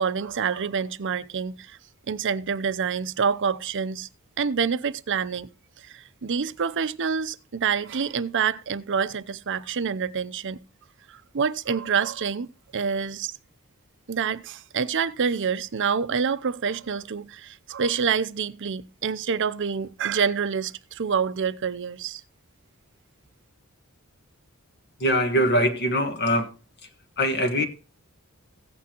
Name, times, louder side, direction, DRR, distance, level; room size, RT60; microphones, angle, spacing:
voice 1, 0.0-1.8 2.1-4.1 4.4-5.5 5.8-10.6 11.1-13.3 14.1-22.2, right 6 dB, 55° right, 0.6 m, -27 dB
voice 2, 25.0-26.5 26.8-26.9 27.2-27.6, equal, 50° left, 1.5 m, -22 dB
16.0 x 8.5 x 2.9 m
head